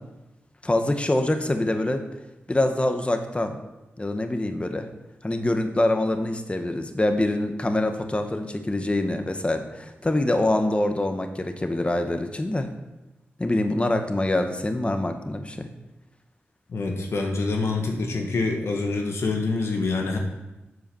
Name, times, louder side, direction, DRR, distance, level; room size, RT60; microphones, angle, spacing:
voice 1, 0.6-2.0 2.5-3.6 4.0-4.9 5.2-12.7 13.4-15.7, left 1 dB, 25° left, 6 dB, 1.1 m, -25 dB
voice 2, 16.7-20.2, left 3 dB, 75° left, 2 dB, 1.3 m, -26 dB
7.9 x 4.8 x 6.9 m, 1.0 s
cardioid pair, 45°, 4 cm